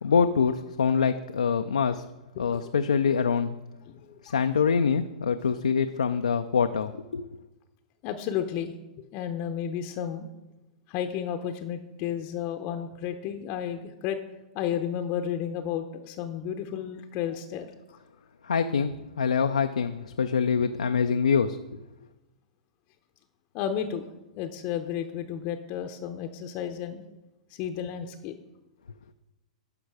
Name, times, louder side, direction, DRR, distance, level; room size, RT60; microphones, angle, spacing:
voice 1, 0.0-2.0 2.4-3.6 4.2-7.2 18.4-21.6, left 6 dB, 85° left, 7 dB, 0.4 m, -25 dB
voice 2, 2.4-2.7 3.9-4.4 8.0-8.7 9.1-10.3 10.9-14.2 14.5-17.7 23.5-24.0 24.4-27.0 27.5-28.4, left 9 dB, 45° left, 6 dB, 0.7 m, -32 dB
11.5 x 5.3 x 4.8 m, 1.0 s
hypercardioid pair, 110°, 4 cm